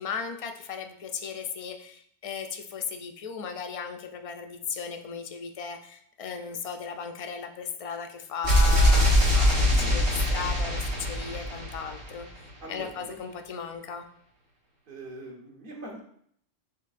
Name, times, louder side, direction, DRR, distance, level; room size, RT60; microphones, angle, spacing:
voice 1, 0.0-12.3 12.7-14.0, left 6 dB, 60° left, 5 dB, 0.3 m, -36 dB
sound 1, 8.4-12.3, equal, 80° right, 1.5 m, -22 dB
voice 2, 9.7-10.1 12.6-13.2 14.9-16.0, right 1 dB, 55° right, 0 dB, 1.2 m, -42 dB
6.4 x 3.4 x 2.4 m, 0.66 s
omnidirectional pair, 1.1 m